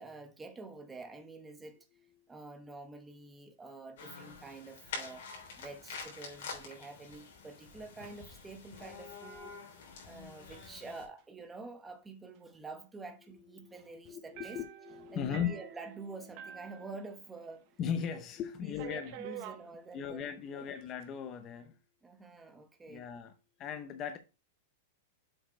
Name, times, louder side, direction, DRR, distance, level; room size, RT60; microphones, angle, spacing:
voice 1, 0.0-1.8 2.3-5.2 5.6-9.6 10.0-14.6 15.1-17.7 18.6-18.8 19.2-20.2 20.5-20.7 22.0-23.0, right 3 dB, 10° right, 0.9 m, -47 dB
sound 1, 4.0-11.1, left 5 dB, 60° left, 3.5 m, -47 dB
voice 2, 13.5-15.5 17.8-19.2 19.9-21.8 22.9-23.3 23.6-24.2, left 8 dB, 20° left, 0.6 m, -38 dB
sound 2, 14.4-17.6 17.8-17.9 18.7-19.6 20.6-21.0, right 11 dB, 35° right, 0.8 m, -47 dB
7.6 x 4.5 x 4.6 m
supercardioid pair, 175°, 0 cm